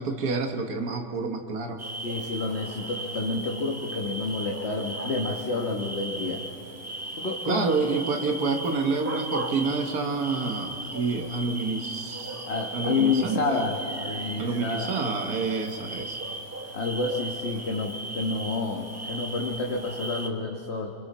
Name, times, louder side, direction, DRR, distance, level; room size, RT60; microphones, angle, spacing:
voice 1, 0.0-1.8 7.5-13.6 14.4-16.2, right 4 dB, 85° right, 4 dB, 1.7 m, -28 dB
sound 1, 1.8-20.3, right 1 dB, 10° right, 1.0 m, -37 dB
voice 2, 2.0-6.4 7.2-7.8 12.5-14.9 16.7-20.9, left 3 dB, 45° left, 0 dB, 1.5 m, -29 dB
29.5 x 24.0 x 4.2 m, 2.9 s
omnidirectional pair, 1.6 m